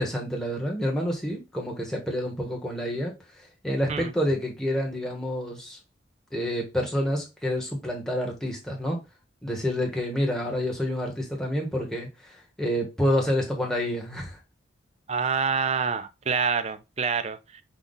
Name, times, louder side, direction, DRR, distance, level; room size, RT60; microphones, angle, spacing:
voice 1, 0.0-3.1 3.6-5.8 6.3-9.0 9.4-14.4, equal, 5° left, 1.2 m, -28 dB
voice 2, 15.1-17.6, right 5 dB, 35° right, 0.4 m, -27 dB
5.7 x 2.4 x 3.8 m
head